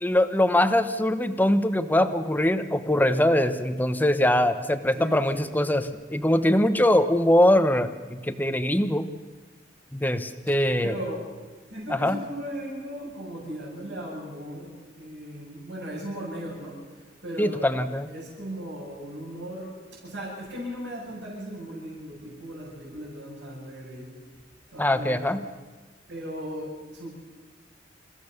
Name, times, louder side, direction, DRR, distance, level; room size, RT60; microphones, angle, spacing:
voice 1, 0.0-9.1 9.9-10.9 11.9-12.2 17.4-18.1 24.8-25.4, left 1 dB, 10° left, 10 dB, 1.1 m, -22 dB
voice 2, 4.9-5.6 10.8-11.3 11.7-16.9 17.2-17.7 18.1-24.2 24.7-25.3 26.1-27.1, equal, 75° right, -7 dB, 7.4 m, -37 dB
29.0 x 16.0 x 6.8 m, 1.4 s
head